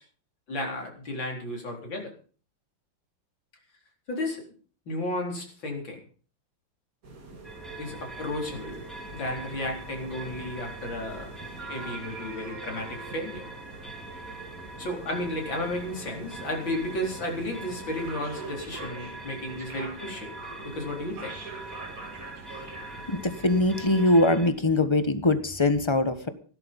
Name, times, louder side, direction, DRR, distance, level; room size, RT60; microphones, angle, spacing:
voice 1, 0.5-2.1 4.1-4.4 4.9-6.0 7.8-8.8 9.1-11.3 11.7-13.4 14.8-20.3 20.6-21.3, left 1 dB, 75° left, 1 dB, 4.9 m, -33 dB
sound 1, 7.0-24.0, right 3 dB, 45° right, 2.7 m, -43 dB
sound 2, 7.4-24.5, right 2 dB, ahead, 3.3 m, -44 dB
voice 2, 23.1-26.3, left 2 dB, 15° left, 10 dB, 1.2 m, -22 dB
16.0 x 12.5 x 5.4 m, 0.41 s
omnidirectional pair, 2.1 m